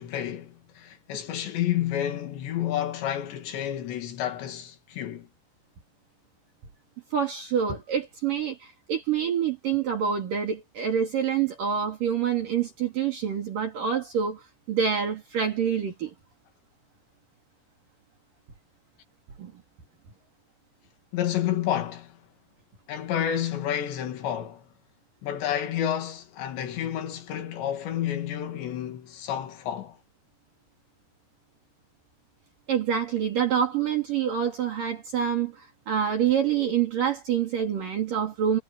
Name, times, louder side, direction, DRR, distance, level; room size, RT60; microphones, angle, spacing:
voice 1, 0.0-5.3 21.1-22.2 22.9-24.6 25.2-30.0, left 10 dB, 85° left, 4.6 m, -30 dB
voice 2, 7.1-14.4 14.7-16.1 19.4-19.5 32.7-38.6, right 8 dB, 55° right, 4.1 m, -26 dB
omnidirectional pair, 4.9 m